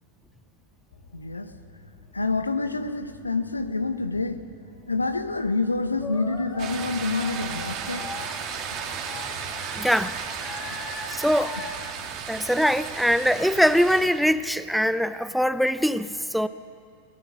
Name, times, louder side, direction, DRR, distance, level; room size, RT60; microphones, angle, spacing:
sound 1, 0.9-14.4, left 3 dB, 60° left, 2.5 m, -52 dB
voice 1, 1.1-1.5 2.1-4.4 4.9-8.1 10.7-10.8 11.3-11.5, left 3 dB, 80° left, 10 dB, 1.2 m, -27 dB
sound 2, 6.0-11.8, left 4 dB, 25° left, 3.4 m, -40 dB
sound 3, 6.6-14.1, right 7 dB, 35° right, 2.5 m, -35 dB
voice 2, 9.7-10.2 11.1-11.6 12.3-16.5, equal, ahead, 15 dB, 0.5 m, -22 dB
26.5 x 18.5 x 6.4 m, 2.2 s
figure-of-eight pair, 90°, 0 cm